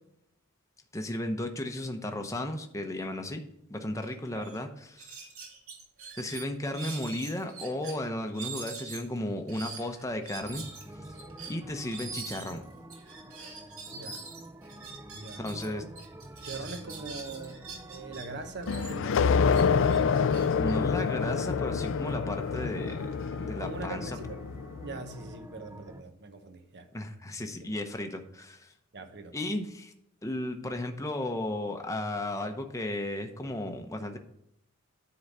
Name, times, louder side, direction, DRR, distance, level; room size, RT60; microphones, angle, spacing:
voice 1, 0.9-3.4 3.7-5.2 6.2-10.6 11.5-12.6 15.4-15.8 20.5-23.1 23.4-24.1 26.9-28.7 29.3-29.9 30.2-34.2, left 1 dB, 15° left, 0.8 m, -34 dB
sound 1, 4.0-4.1 4.4-4.6 5.0-7.9 8.3-15.7 15.9-18.2 18.6-21.5, right 5 dB, 75° right, 2.6 m, -44 dB
sound 2, 10.4-26.0, right 1 dB, 15° right, 0.5 m, -48 dB
voice 2, 13.9-14.2 15.1-15.8 16.4-19.4 23.6-24.4 24.8-26.9 28.9-29.4, right 3 dB, 55° right, 1.1 m, -42 dB
sound 3, 18.7-25.0, left 5 dB, 60° left, 0.4 m, -27 dB
9.9 x 3.9 x 7.1 m
head